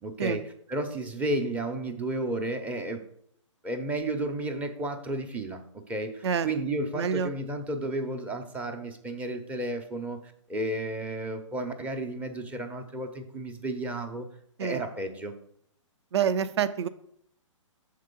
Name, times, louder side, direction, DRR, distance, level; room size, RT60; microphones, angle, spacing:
voice 1, 0.0-3.0 3.6-5.6 5.9-14.3 14.6-15.3, right 1 dB, 10° right, 6 dB, 0.5 m, -32 dB
voice 2, 6.9-7.3 14.6-14.8 16.1-16.9, right 7 dB, 60° right, 12 dB, 0.5 m, -27 dB
6.6 x 3.8 x 5.2 m, 0.68 s
hypercardioid pair, 140°, 16 cm